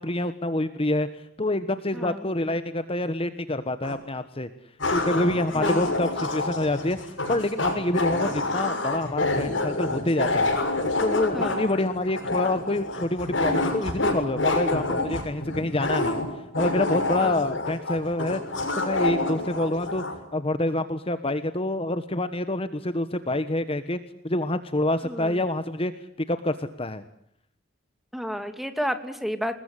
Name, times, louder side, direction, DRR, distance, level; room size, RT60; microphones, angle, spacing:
voice 1, 0.0-4.5 4.9-10.5 11.0-16.2 16.6-18.4 18.8-20.0 20.3-24.0 24.2-25.9 26.3-27.0, left 1 dB, 30° left, 11 dB, 1.3 m, -27 dB
voice 2, 1.9-2.3 5.5-5.9 11.3-11.7 17.2-17.4 25.0-25.4 28.1-29.6, equal, ahead, 8 dB, 2.7 m, -31 dB
sound 1, 3.8-3.9 4.8-20.2, left 2 dB, 70° left, 6.9 m, -27 dB
28.0 x 21.0 x 9.9 m, 0.75 s
head